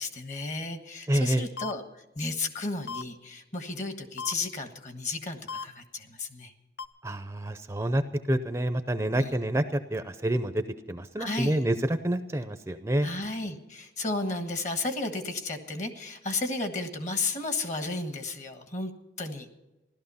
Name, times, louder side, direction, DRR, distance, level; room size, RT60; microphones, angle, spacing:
voice 1, 0.0-1.8 2.1-6.5 9.2-9.4 11.2-11.6 13.0-18.9 19.2-19.5, left 3 dB, 45° left, 7 dB, 1.4 m, -33 dB
voice 2, 1.1-1.4 7.0-8.0 8.3-10.6 10.9-11.8 12.0-13.1, right 1 dB, 15° right, 10 dB, 0.5 m, -27 dB
sound 1, 1.6-1.7 2.9-3.0 4.2-4.3 5.5-5.6 6.8-6.9, left 5 dB, 90° left, 0.7 m, -35 dB
15.5 x 12.5 x 5.6 m, 1.0 s
head